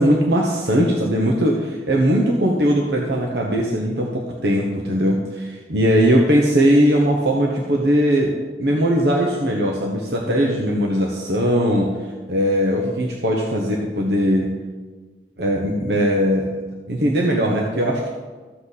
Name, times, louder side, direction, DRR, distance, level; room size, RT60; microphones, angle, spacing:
voice 1, 0.0-8.3 8.6-11.9 12.3-14.5 15.4-16.5 16.9-18.1, equal, 70° right, -1 dB, 1.2 m, -19 dB
14.0 x 7.8 x 4.2 m, 1.3 s
head